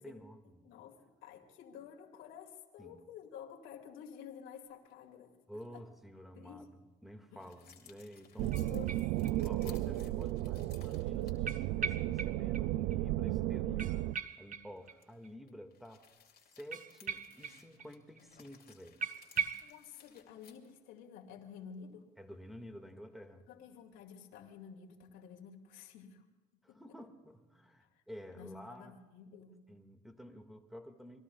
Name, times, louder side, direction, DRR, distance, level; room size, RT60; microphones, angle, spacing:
voice 1, 0.0-0.7 2.8-3.0 5.5-8.7 9.4-14.1 14.4-16.0 16.5-19.0 22.2-23.4 26.6-29.0 29.7-31.2, equal, ahead, 3 dB, 1.9 m, -51 dB
voice 2, 0.6-5.4 5.7-5.8 6.3-6.7 7.3-7.4 8.5-8.9 9.2-9.4 19.6-22.1 23.5-26.3 26.7-27.0 27.8-28.0 28.3-29.6, left 7 dB, 80° left, 1 dB, 2.3 m, -51 dB
sound 1, 4.6-4.9 5.6-5.8 7.4-11.4 12.1-12.2 14.8-21.0, left 7 dB, 50° left, 2.8 m, -61 dB
sound 2, 8.4-14.1, right 16 dB, 80° right, 0.4 m, -34 dB
sound 3, 8.5-9.7 10.0-10.1 11.5-12.7 12.9-13.0 13.3-13.4 13.8-15.3 16.7-17.9 18.2-18.3 18.5-18.6 19.0-19.7, right 5 dB, 45° right, 1.2 m, -40 dB
26.5 x 21.0 x 2.4 m, 1.2 s
supercardioid pair, 60°, 20 cm